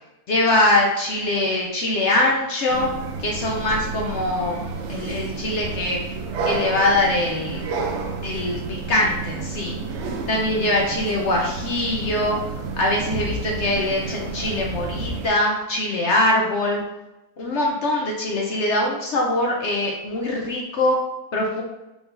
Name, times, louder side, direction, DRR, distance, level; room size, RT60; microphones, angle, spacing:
voice 1, 0.3-2.9 3.2-4.6 4.9-6.2 6.4-7.7 8.2-9.8 10.3-12.4 12.8-16.8 17.4-21.0 21.3-21.6, left 1 dB, 65° left, -1 dB, 0.7 m, -22 dB
sound 1, 2.7-15.3, right 4 dB, 85° right, 0.6 m, -30 dB
4.9 x 3.7 x 2.6 m, 0.95 s
omnidirectional pair, 1.8 m